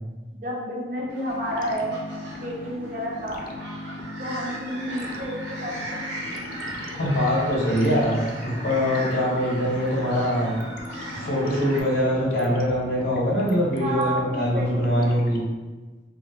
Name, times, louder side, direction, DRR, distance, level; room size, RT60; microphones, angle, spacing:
voice 1, 0.3-2.0 2.4-3.4 4.2-6.0 13.8-15.1, equal, 50° right, -2 dB, 0.7 m, -30 dB
sound 1, 1.1-11.8, right 1 dB, 80° right, 0.9 m, -38 dB
sound 2, 1.3-15.5, left 2 dB, 50° left, 0.3 m, -38 dB
voice 2, 7.0-8.2 8.4-10.6 11.1-15.4, equal, 90° left, -7 dB, 1.5 m, -23 dB
3.2 x 2.5 x 2.8 m, 1.2 s
head